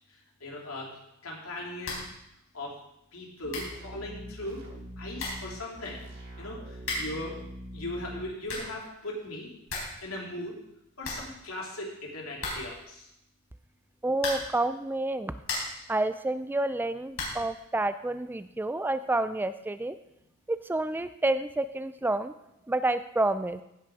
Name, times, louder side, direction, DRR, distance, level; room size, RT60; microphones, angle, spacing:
voice 1, 0.4-2.0 2.5-2.8 3.1-4.6 5.0-6.0 6.4-7.4 7.7-9.5 10.0-10.6 11.0-13.1, left 1 dB, 85° left, -2 dB, 3.0 m, -38 dB
sound 1, 1.8-2.2 2.5-2.6 3.2-3.3 3.5-3.8 4.8-4.9 5.2-5.5 6.8-7.3 8.2-8.8 9.2-9.3 9.5-10.0 10.3-10.4 10.7-10.8 11.0-11.8 12.4-12.9 14.1-14.6 15.1-15.9 17.1-17.5, left 2 dB, 70° left, 4.3 m, -36 dB
sound 2, 3.4-8.2, equal, 80° right, 4.1 m, -43 dB
voice 2, 14.0-15.4 15.9-20.0 20.5-22.3 22.7-23.6, right 2 dB, 10° right, 12 dB, 0.3 m, -29 dB
16.0 x 5.9 x 4.8 m, 0.82 s
head